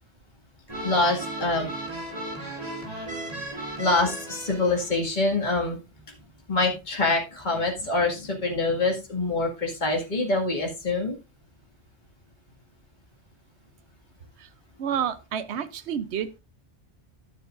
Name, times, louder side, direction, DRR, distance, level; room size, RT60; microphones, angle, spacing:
sound 1, 0.7-5.0, right 1 dB, 35° right, 2.4 m, -36 dB
voice 1, 0.8-1.7 3.8-5.8 6.5-11.2, left 2 dB, 45° left, 0 dB, 2.2 m, -25 dB
voice 2, 14.8-16.4, right 8 dB, 75° right, 12 dB, 1.0 m, -30 dB
13.0 x 7.1 x 2.5 m, 0.26 s
omnidirectional pair, 1.1 m